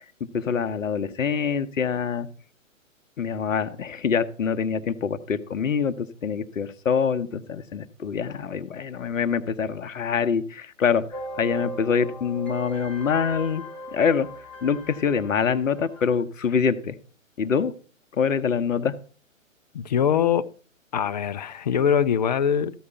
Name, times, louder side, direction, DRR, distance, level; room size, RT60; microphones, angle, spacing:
voice 1, 0.3-2.3 3.2-11.0 11.4-13.7 13.9-14.3 14.6-16.9 17.4-17.7 18.2-18.9, left 6 dB, 70° left, 1.0 m, -25 dB
sound 1, 11.1-16.2, equal, ahead, 1.1 m, -38 dB
voice 2, 19.7-20.5 20.9-22.8, left 8 dB, 35° left, 0.4 m, -22 dB
14.0 x 4.8 x 5.6 m
figure-of-eight pair, 130°, 40 cm